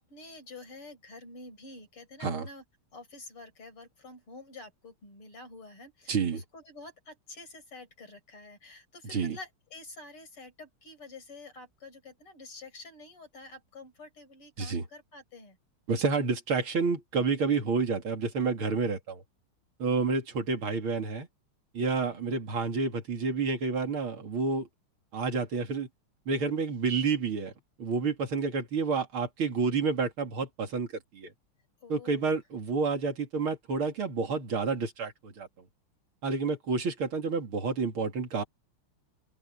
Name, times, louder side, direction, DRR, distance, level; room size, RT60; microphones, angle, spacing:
voice 1, 0.0-2.6 2.9-15.6 19.8-20.2 22.0-22.4 31.8-32.4, left 2 dB, 80° left, 7.0 m, -48 dB
voice 2, 6.1-6.4 9.1-9.4 14.6-14.8 15.9-19.2 19.8-21.3 21.7-24.7 25.1-25.9 26.3-27.5 27.8-30.9 31.1-31.3 31.9-35.5 36.2-38.4, right 4 dB, 70° right, 3.4 m, -29 dB
open air
omnidirectional pair, 2.4 m